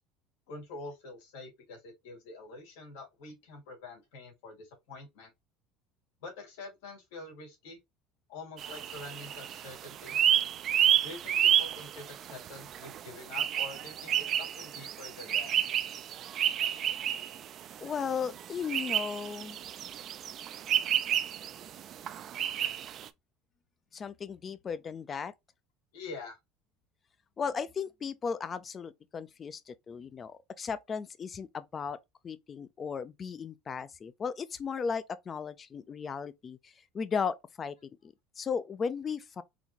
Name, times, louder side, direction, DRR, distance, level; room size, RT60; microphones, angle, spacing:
voice 1, 0.5-5.3 6.2-7.8 8.3-10.2 11.0-15.6 25.9-26.4, left 3 dB, 85° left, 2.2 m, -46 dB
sound 1, 8.6-23.1, right 10 dB, 45° right, 0.4 m, -30 dB
voice 2, 17.8-19.6 23.9-25.3 27.4-32.0 32.2-37.8 38.0-39.4, left 6 dB, 30° left, 0.4 m, -36 dB
4.0 x 3.0 x 2.9 m
supercardioid pair, 125°, 0 cm